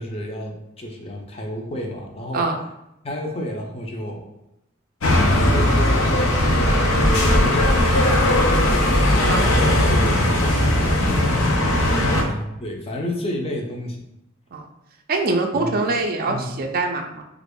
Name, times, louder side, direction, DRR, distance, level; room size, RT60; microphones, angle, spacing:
voice 1, 0.0-2.5 3.0-4.2 5.2-9.0 9.4-11.6 12.2-14.0 15.5-15.8 16.3-16.5, equal, 30° left, 1 dB, 0.5 m, -31 dB
sound 1, 5.0-12.2, left 1 dB, 75° left, 0.6 m, -18 dB
voice 2, 15.1-17.2, right 3 dB, 45° right, 3 dB, 0.4 m, -24 dB
3.0 x 2.5 x 3.5 m, 0.85 s
head